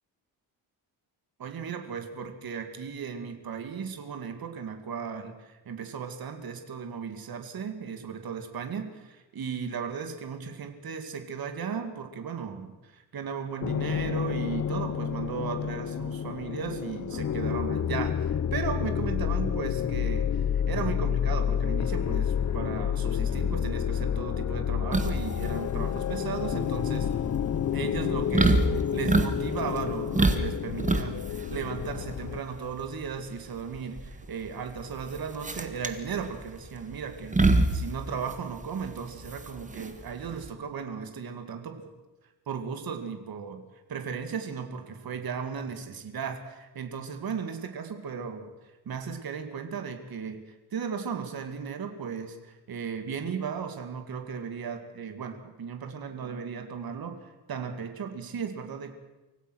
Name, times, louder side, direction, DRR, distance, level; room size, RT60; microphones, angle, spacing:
voice 1, 1.4-27.1 27.7-41.9 42.5-43.6 43.9-48.5 48.9-50.4 50.7-59.0, right 6 dB, 60° right, 7 dB, 2.3 m, -36 dB
sound 1, 13.6-32.4, left 8 dB, 40° left, 0.6 m, -29 dB
sound 2, 24.9-40.5, right 2 dB, 20° right, 1.5 m, -28 dB
25.0 x 16.5 x 6.4 m, 1.1 s
wide cardioid pair, 145°, 41 cm